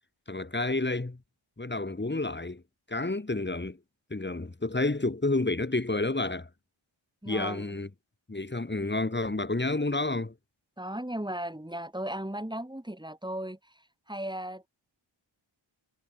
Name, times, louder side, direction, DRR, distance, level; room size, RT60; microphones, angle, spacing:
voice 1, 0.3-1.2 1.6-2.6 2.9-3.8 4.1-6.5 7.3-7.9 8.3-10.3, left 2 dB, 20° left, 2.5 m, -30 dB
voice 2, 7.2-7.6 10.8-14.7, right 1 dB, 10° right, 4.4 m, -36 dB
wide cardioid pair, 85°, 48 cm